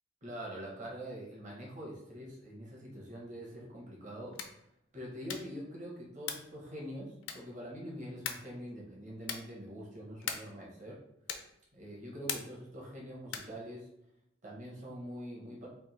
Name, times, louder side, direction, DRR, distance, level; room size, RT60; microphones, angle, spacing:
voice 1, 0.2-4.4 4.9-11.0 11.7-13.9 14.4-15.7, equal, 40° right, -3 dB, 1.2 m, -44 dB
sound 1, 4.3-4.7 5.2-5.6 6.2-6.6 7.2-7.6 8.2-8.6 9.2-9.6 10.2-10.6 11.2-11.6 12.3-12.7 13.2-13.6, left 7 dB, 85° left, 0.5 m, -40 dB
3.6 x 2.6 x 4.2 m, 0.79 s
head